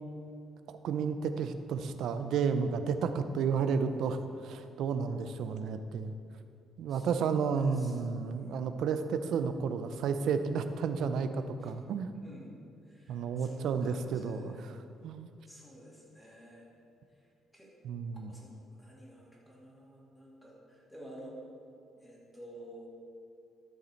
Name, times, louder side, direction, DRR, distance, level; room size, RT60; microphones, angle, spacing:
voice 1, 0.7-6.1 6.8-12.1 13.1-15.3 17.8-18.3, right 6 dB, 70° right, 9 dB, 0.6 m, -32 dB
voice 2, 6.9-7.9 8.3-8.8 11.6-11.7 12.2-12.5 12.9-14.6 15.4-16.7 17.5-17.7 18.2-21.4 22.0-22.9, equal, 5° left, -4 dB, 2.4 m, -52 dB
12.5 x 6.7 x 4.5 m, 2.4 s
cardioid pair, 140°, 0 cm